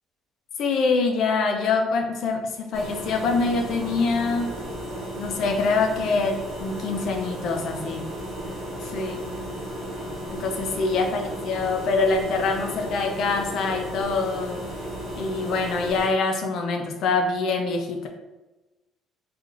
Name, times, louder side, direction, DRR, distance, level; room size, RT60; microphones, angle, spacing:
voice 1, 0.6-4.5 5.2-8.0 8.8-9.2 10.3-14.6 15.1-18.1, left 4 dB, 55° left, 3 dB, 0.6 m, -25 dB
sound 1, 2.7-16.1, equal, 40° right, 1.0 m, -34 dB
4.6 x 2.5 x 2.4 m, 1.1 s
cardioid pair, 170°, 0 cm